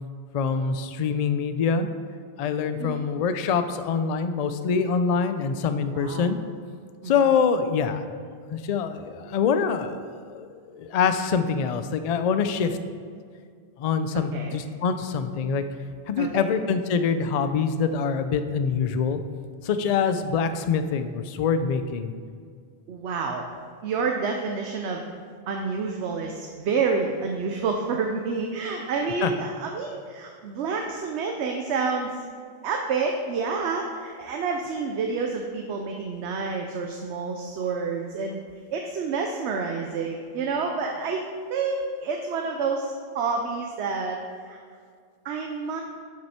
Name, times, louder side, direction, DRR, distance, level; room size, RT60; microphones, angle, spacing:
voice 1, 0.3-1.9 2.4-6.4 7.1-8.0 8.5-10.5 10.7-12.8 13.8-15.6 16.1-19.2 19.6-22.1 29.2-29.3, left 6 dB, 60° left, 9 dB, 0.4 m, -25 dB
voice 2, 5.9-6.3 7.0-7.1 12.7-12.8 14.1-14.6 16.2-16.5 22.9-23.5 23.8-25.0 25.5-32.2 32.6-38.4 38.7-41.2 41.5-44.2 44.5-44.6 45.2-45.8, right 4 dB, 75° right, 2 dB, 0.9 m, -28 dB
7.4 x 6.1 x 4.3 m, 2.1 s
omnidirectional pair, 1.2 m